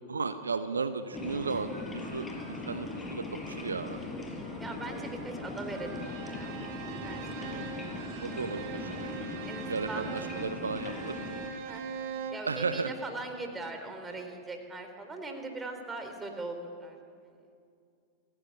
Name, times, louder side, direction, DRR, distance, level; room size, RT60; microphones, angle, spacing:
voice 1, 0.1-1.7 2.1-4.0 8.2-8.9 9.7-11.2 12.5-12.9, right 4 dB, 75° right, 11 dB, 1.0 m, -34 dB
sound 1, 1.1-11.5, left 2 dB, 15° left, 5.6 m, -39 dB
voice 2, 4.6-6.5 6.9-7.3 9.4-10.2 11.7-11.9 12.3-17.0, right 2 dB, 15° right, 5 dB, 4.0 m, -40 dB
Bowed string instrument, 5.7-12.5, right 6 dB, 50° right, 2.3 m, -41 dB
28.5 x 16.0 x 9.9 m, 2.4 s
figure-of-eight pair, 90°, 0 cm